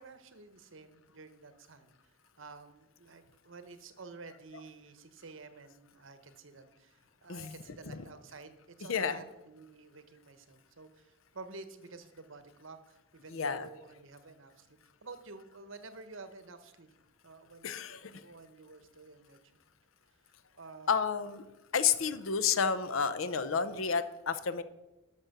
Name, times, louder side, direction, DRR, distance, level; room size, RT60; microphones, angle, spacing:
voice 1, 0.0-16.9 17.2-19.4 20.6-21.0, right 3 dB, 75° right, 11 dB, 1.0 m, -51 dB
voice 2, 8.9-9.2 13.3-13.7 17.6-18.2 20.9-21.4 21.7-24.6, left 6 dB, 80° left, 13 dB, 0.7 m, -30 dB
12.0 x 6.1 x 6.7 m, 1.0 s
head